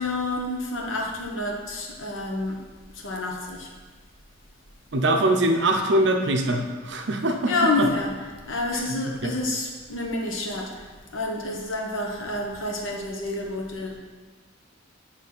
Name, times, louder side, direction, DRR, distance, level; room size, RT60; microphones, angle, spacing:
voice 1, 0.0-2.6 2.9-3.7 7.4-8.1 8.5-10.9 11.1-14.0, left 2 dB, 80° left, 0 dB, 1.2 m, -28 dB
voice 2, 4.9-7.5 7.8-7.9 8.7-8.8 9.2-9.3, right 1 dB, 60° right, 4 dB, 0.7 m, -22 dB
7.4 x 3.3 x 5.9 m, 1.4 s
head